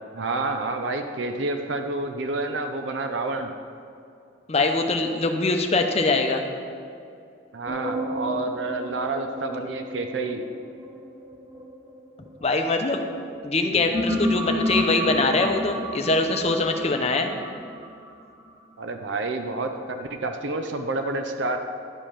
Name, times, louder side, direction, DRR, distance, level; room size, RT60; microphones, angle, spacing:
voice 1, 0.1-3.5 7.5-10.4 18.8-21.6, right 3 dB, 75° right, 6 dB, 0.6 m, -29 dB
voice 2, 4.5-6.4 12.4-13.0 13.4-17.3, left 3 dB, 35° left, 4 dB, 0.7 m, -23 dB
sound 1, 7.7-12.9 13.5-18.5, equal, 20° right, 0.7 m, -31 dB
11.0 x 5.1 x 5.7 m, 2.5 s
head